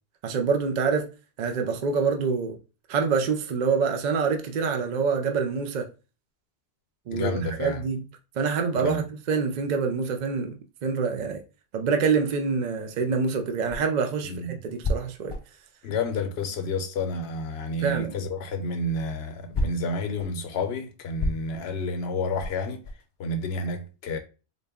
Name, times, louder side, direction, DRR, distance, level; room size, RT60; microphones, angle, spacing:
voice 1, 0.2-1.1 1.4-2.6 2.9-5.9 7.1-8.0 8.4-10.5 10.8-11.4 11.7-15.4 17.8-18.2, right 5 dB, 55° right, 0.5 m, -26 dB
voice 2, 7.1-7.8 8.8-9.0 14.2-14.5 15.8-22.8 23.2-24.2, left 2 dB, 75° left, 0.9 m, -30 dB
sound 1, 13.6-17.1 17.4-23.2, left 1 dB, 35° left, 0.4 m, -33 dB
4.0 x 2.2 x 3.5 m
omnidirectional pair, 1.1 m